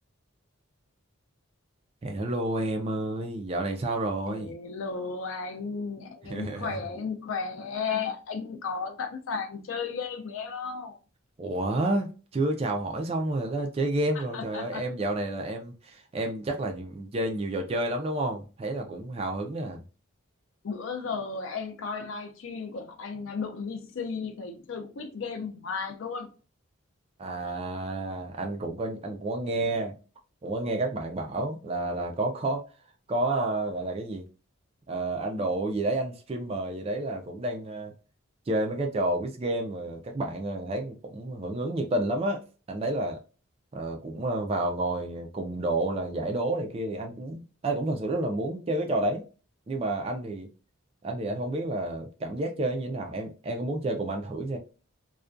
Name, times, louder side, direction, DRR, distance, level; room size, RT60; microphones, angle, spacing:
voice 1, 2.0-4.5 6.2-6.8 11.4-19.8 27.2-30.0 30.4-32.6 33.1-34.3 34.9-37.9 38.5-42.4 42.7-43.2 43.7-49.2 49.7-50.5 51.0-54.6, right 2 dB, 30° right, 0.3 m, -30 dB
voice 2, 4.3-11.0 14.3-14.9 20.6-26.3, left 5 dB, 65° left, 0.4 m, -34 dB
2.4 x 2.1 x 2.4 m
head